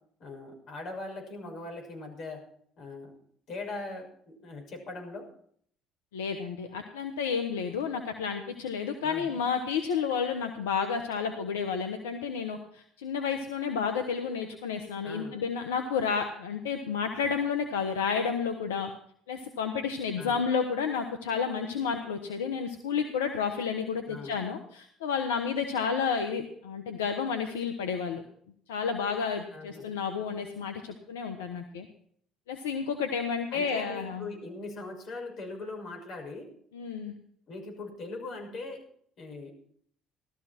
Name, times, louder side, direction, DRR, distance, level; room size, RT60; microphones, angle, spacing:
voice 1, 0.2-2.4 2.8-3.1 3.5-5.3 9.0-9.4 15.0-15.4 20.2-20.4 24.1-24.4 29.5-30.0 33.5-36.5 37.5-38.8 39.2-39.5, left 2 dB, 55° left, 3 dB, 6.3 m, -40 dB
voice 2, 6.1-18.9 19.3-28.2 28.7-31.9 32.5-34.3 36.7-37.1, left 6 dB, 90° left, 6 dB, 1.2 m, -31 dB
17.0 x 13.5 x 4.5 m, 0.62 s
hypercardioid pair, 65°, 0 cm